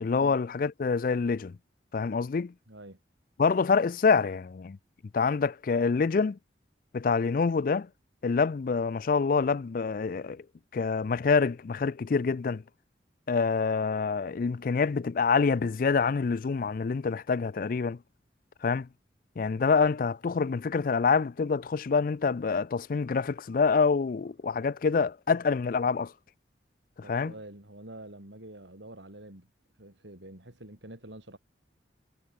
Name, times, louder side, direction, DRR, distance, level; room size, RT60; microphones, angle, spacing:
voice 1, 0.0-1.6 1.9-2.5 3.4-4.8 5.1-6.4 6.9-7.9 8.2-10.4 10.7-12.6 13.3-18.0 18.6-18.9 19.4-26.1 27.1-27.3, left 5 dB, 50° left, 0.4 m, -26 dB
voice 2, 2.7-3.0 27.0-29.5 29.8-31.4, right 1 dB, 80° right, 5.3 m, -47 dB
head